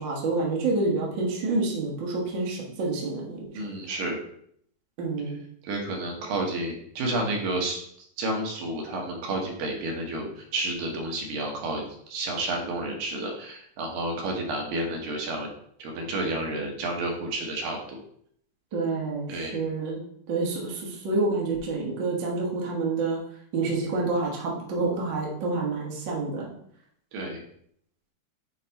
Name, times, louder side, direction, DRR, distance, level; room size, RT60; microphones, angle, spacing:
voice 1, 0.0-3.4 5.0-5.4 18.7-20.0 20.3-23.2 23.5-26.5, right 3 dB, 50° right, -3 dB, 1.5 m, -28 dB
voice 2, 3.5-4.2 5.6-7.8 8.2-15.5 15.8-18.0 19.3-19.6 27.1-27.4, right 2 dB, 80° right, 0 dB, 2.9 m, -30 dB
8.3 x 3.2 x 4.0 m, 0.66 s
omnidirectional pair, 4.0 m